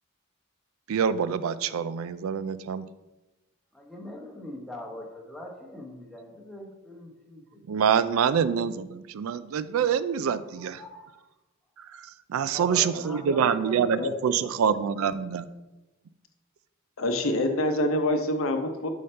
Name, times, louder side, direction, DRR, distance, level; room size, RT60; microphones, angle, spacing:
voice 1, 0.9-2.8 7.7-10.8 12.3-15.5, right 7 dB, 80° right, 14 dB, 0.3 m, -26 dB
voice 2, 3.7-7.8 10.6-11.3 12.5-14.4, left 1 dB, ahead, -1 dB, 1.0 m, -41 dB
voice 3, 17.0-18.9, left 1 dB, 75° left, 6 dB, 0.7 m, -26 dB
5.5 x 5.0 x 4.3 m, 1.1 s
head